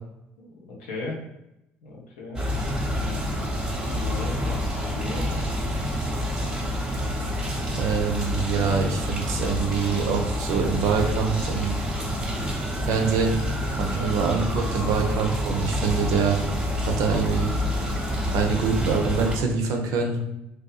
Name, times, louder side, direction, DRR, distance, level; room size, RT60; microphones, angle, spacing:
voice 1, 0.4-1.2 1.8-2.7 3.9-5.4 13.8-14.1, left 2 dB, 80° left, -2 dB, 0.6 m, -36 dB
sound 1, 2.3-19.4, equal, 15° right, 0.8 m, -28 dB
voice 2, 7.7-11.8 12.8-13.4 13.8-16.4 16.8-17.5 18.3-20.2, right 5 dB, 65° right, 3 dB, 0.5 m, -25 dB
2.6 x 2.2 x 2.3 m, 0.85 s
hypercardioid pair, 55°, 6 cm